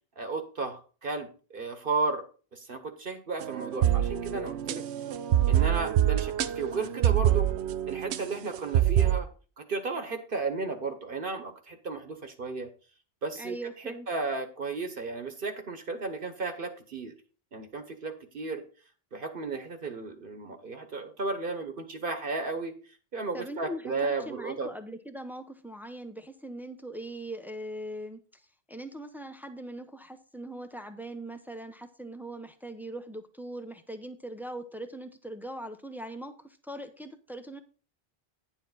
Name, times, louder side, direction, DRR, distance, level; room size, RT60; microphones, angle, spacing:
voice 1, 0.2-2.2 2.5-4.8 5.5-7.5 7.9-9.3 9.7-12.7 13.2-13.6 14.1-17.1 17.5-18.6 19.1-22.7 23.1-24.7, right 3 dB, 55° right, 8 dB, 1.2 m, -34 dB
sound 1, 3.4-9.2, right 11 dB, 80° right, 0.9 m, -26 dB
voice 2, 13.4-14.1 23.3-37.6, right 1 dB, ahead, 8 dB, 0.6 m, -41 dB
9.9 x 7.3 x 4.0 m, 0.38 s
omnidirectional pair, 1.1 m